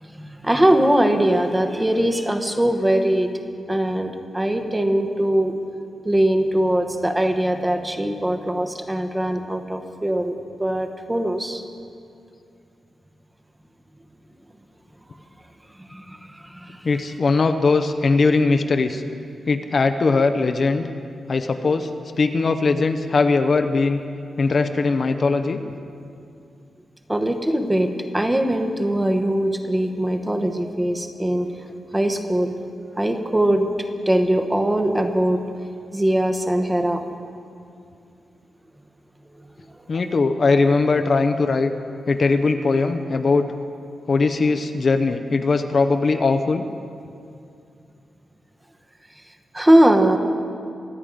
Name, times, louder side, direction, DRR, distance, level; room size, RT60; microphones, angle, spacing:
voice 1, 0.0-3.3 3.7-5.5 6.0-11.6 15.8-16.9 27.1-31.5 31.9-32.5 33.0-33.7 34.1-35.4 35.9-37.1 49.5-50.2, right 1 dB, 10° right, 6 dB, 1.0 m, -21 dB
voice 2, 16.8-19.0 19.5-20.9 21.3-21.9 22.2-24.0 24.4-25.6 39.9-41.7 42.1-43.5 44.1-46.6, left 3 dB, 40° left, 7 dB, 0.7 m, -20 dB
24.5 x 8.9 x 5.1 m, 2.4 s
wide cardioid pair, 140°, 0 cm